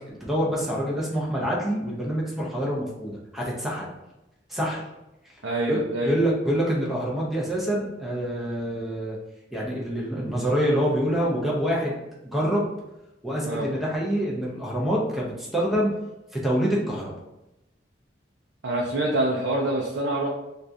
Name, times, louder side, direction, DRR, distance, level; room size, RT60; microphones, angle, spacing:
voice 1, 0.2-3.9 4.5-4.8 5.7-9.2 9.5-11.9 12.3-12.7 13.2-15.9 16.3-17.1, equal, ahead, -5 dB, 0.6 m, -26 dB
voice 2, 5.4-6.2 13.4-13.7 18.6-20.3, right 1 dB, 70° right, -2 dB, 0.5 m, -25 dB
3.4 x 2.4 x 2.6 m, 0.93 s
head